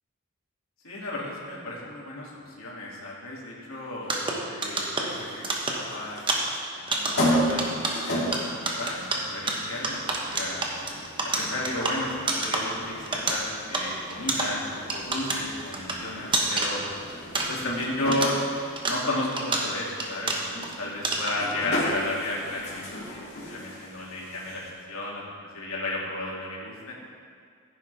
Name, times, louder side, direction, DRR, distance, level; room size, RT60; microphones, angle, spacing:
voice 1, 0.8-10.7 11.4-16.8 17.5-18.4 18.8-26.9, left 2 dB, 85° left, -4 dB, 2.7 m, -33 dB
sound 1, 4.0-17.9 18.1-20.7 21.0-21.5, right 2 dB, 25° right, 1.1 m, -30 dB
Riga Latvia. Elevator in Grand Palace hotel, 5.0-24.7, equal, 50° left, 2.9 m, -35 dB
15.5 x 9.8 x 3.5 m, 2.1 s
head